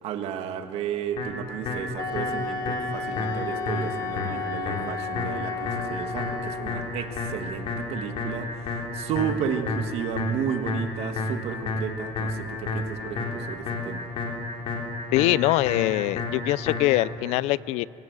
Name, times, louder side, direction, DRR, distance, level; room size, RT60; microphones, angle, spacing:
voice 1, 0.0-14.1, right 8 dB, 65° right, 8 dB, 1.5 m, -33 dB
sound 1, 1.2-17.2, left 3 dB, 55° left, 3.9 m, -32 dB
Wind instrument woodwind instrument, 2.0-6.9, left 4 dB, 40° left, 1.7 m, -33 dB
voice 2, 15.1-17.9, left 18 dB, 90° left, 21 dB, 0.4 m, -23 dB
24.5 x 17.0 x 7.9 m, 3.0 s
cardioid pair, 140°, 11 cm